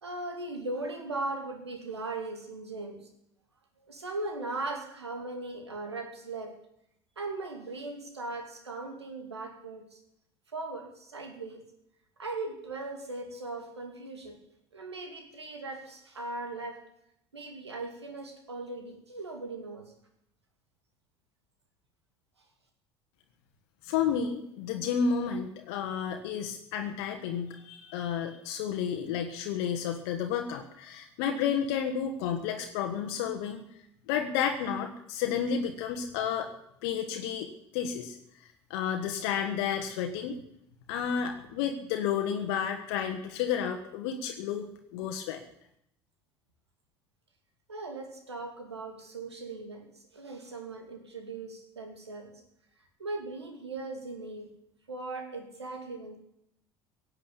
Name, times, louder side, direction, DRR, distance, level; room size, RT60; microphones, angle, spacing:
voice 1, 0.0-3.0 3.8-6.5 7.2-10.0 10.5-11.6 12.2-14.4 14.7-16.8 17.3-19.9 47.7-49.9 50.1-52.3 53.0-54.5 54.9-56.2, right 2 dB, 90° right, 4 dB, 2.4 m, -38 dB
voice 2, 23.8-33.6 34.1-36.5 36.8-38.2 38.7-40.4 40.9-44.7 44.9-45.4, left 7 dB, 65° left, 4 dB, 1.3 m, -31 dB
17.0 x 7.6 x 8.6 m, 0.75 s
figure-of-eight pair, 65°, 14 cm